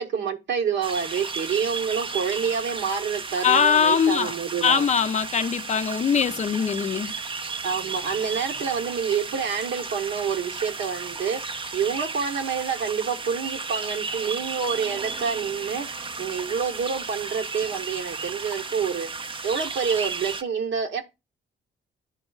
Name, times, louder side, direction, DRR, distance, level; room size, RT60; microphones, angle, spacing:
voice 1, 0.0-4.9 7.6-11.4 11.7-19.1 19.4-21.0, right 6 dB, 65° right, 1.0 m, -28 dB
sound 1, 0.8-20.4, right 4 dB, 25° right, 0.5 m, -34 dB
voice 2, 3.4-4.3 4.6-7.1, left 7 dB, 35° left, 0.4 m, -21 dB
10.5 x 4.3 x 2.3 m
cardioid pair, 90°, 20 cm